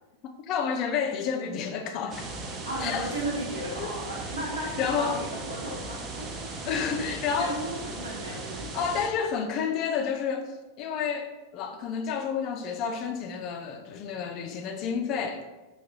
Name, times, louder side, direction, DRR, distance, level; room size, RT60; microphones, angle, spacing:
voice 1, 0.2-2.3 2.8-3.1 3.8-3.9 4.8-5.2 6.6-7.6 8.3-8.4 8.7-10.5 10.8-15.4, left 6 dB, 40° left, 0.4 m, -30 dB
sound 1, 2.1-9.1, right 2 dB, 25° right, 0.5 m, -37 dB
voice 2, 2.7-7.0 7.3-8.7, right 1 dB, 70° right, 1.2 m, -35 dB
4.5 x 2.3 x 2.8 m
figure-of-eight pair, 90°, 0 cm